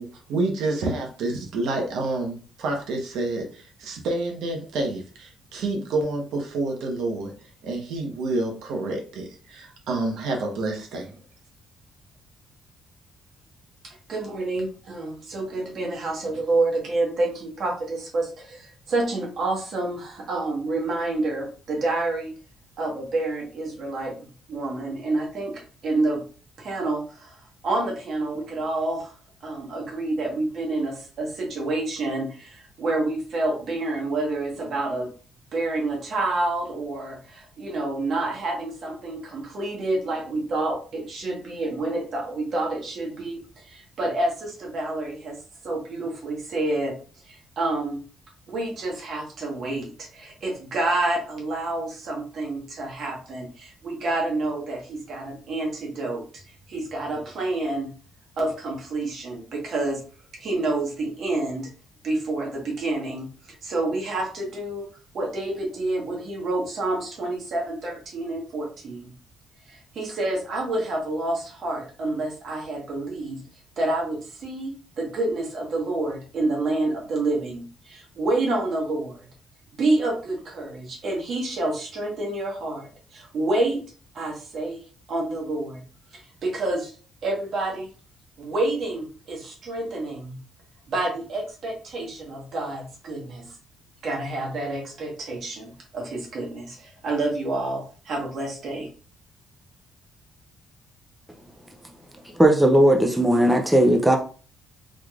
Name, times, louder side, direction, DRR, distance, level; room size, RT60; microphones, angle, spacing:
voice 1, 0.0-7.3 7.6-11.2, right 2 dB, 85° right, 2 dB, 0.9 m, -28 dB
voice 2, 13.8-22.3 22.8-26.2 26.6-27.3 27.6-29.1 29.4-35.1 35.5-46.9 47.3-48.0 48.5-56.4 56.7-57.9 58.4-60.0 60.3-61.7 62.0-63.3 63.6-64.9 65.1-69.1 69.7-73.4 73.8-79.3 79.8-83.8 84.1-84.8 85.1-85.8 86.1-86.9 87.2-87.9 88.4-90.4 90.9-93.6 94.0-98.9, right 2 dB, 45° right, -1 dB, 1.2 m, -28 dB
voice 3, 102.3-104.2, right 1 dB, 5° right, 2 dB, 0.3 m, -17 dB
3.6 x 3.1 x 2.4 m, 0.39 s
cardioid pair, 170°, 0 cm